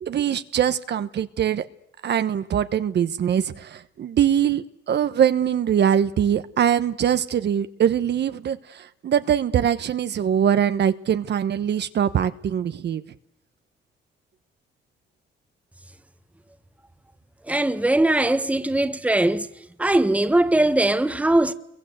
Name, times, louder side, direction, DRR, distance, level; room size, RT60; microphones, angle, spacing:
voice 1, 0.0-1.7 2.0-13.0, right 9 dB, 60° right, 1.1 m, -22 dB
voice 2, 17.5-19.5 19.8-21.5, right 1 dB, 5° right, 1.3 m, -20 dB
29.0 x 23.0 x 8.1 m
cardioid pair, 90°, 20 cm